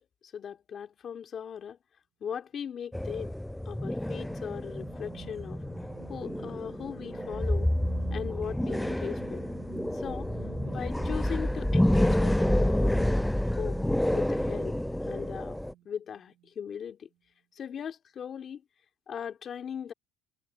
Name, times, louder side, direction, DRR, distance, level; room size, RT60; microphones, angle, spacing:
voice 1, 0.2-1.8 2.2-3.3 3.7-5.6 6.1-7.7 8.1-9.4 9.9-10.3 10.6-13.8 14.1-14.8 15.0-15.6 15.8-17.1 17.5-18.6 19.1-19.9, left 8 dB, 40° left, 2.2 m, -38 dB
sound 1, 2.9-15.7, left 1 dB, 5° left, 0.3 m, -29 dB
sound 2, 3.6-15.9 16.3-16.5, right 14 dB, 60° right, 1.2 m, -49 dB
supercardioid pair, 110°, 0 cm